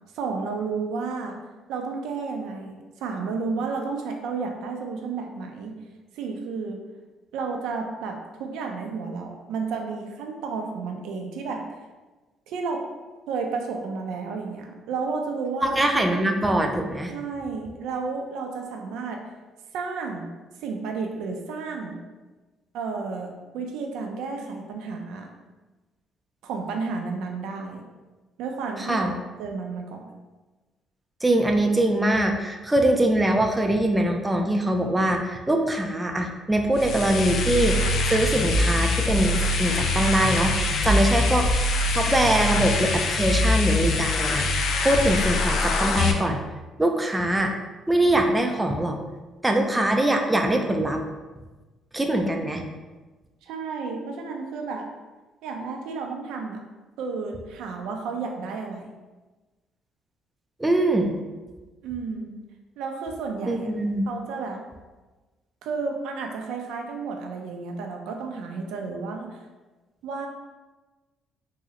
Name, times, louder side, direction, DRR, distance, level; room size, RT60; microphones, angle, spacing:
voice 1, 0.1-1.4 1.7-5.7 6.2-6.8 7.3-11.6 12.5-12.8 13.3-16.0 17.1-19.2 19.7-20.3 20.6-22.0 22.7-25.3 26.4-27.8 28.4-30.1 53.4-54.9 55.4-56.6 57.0-58.9 61.8-62.3 62.8-63.7 64.1-64.6 65.6-69.4 70.0-70.3, right 4 dB, 85° right, 3 dB, 0.4 m, -32 dB
voice 2, 15.6-17.1 28.8-29.1 31.2-37.8 38.0-40.5 40.8-41.5 41.9-44.5 44.8-46.4 46.8-47.5 47.9-49.0 49.4-51.0 51.9-52.6 60.6-61.1 63.5-64.1, right 1 dB, 10° right, 3 dB, 0.3 m, -23 dB
sound 1, 36.7-46.1, left 2 dB, 60° left, 0.4 m, -23 dB
3.6 x 2.0 x 2.8 m, 1.2 s
cardioid pair, 110°, 0 cm